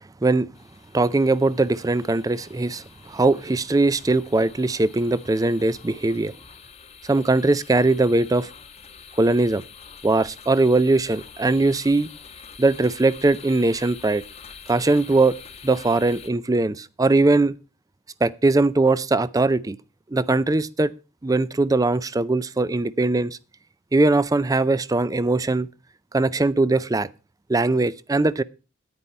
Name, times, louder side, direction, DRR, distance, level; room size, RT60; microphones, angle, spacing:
sound 1, 0.5-16.3, left 6 dB, 30° left, 1.0 m, -46 dB
voice 1, 0.9-6.3 7.0-8.5 9.2-9.6 10.0-12.1 12.6-14.2 14.7-15.3 15.6-17.6 18.2-19.8 20.1-20.9 21.2-23.4 23.9-25.7 26.1-27.1 27.5-28.4, right 2 dB, 15° right, 0.4 m, -20 dB
10.0 x 9.7 x 4.5 m
head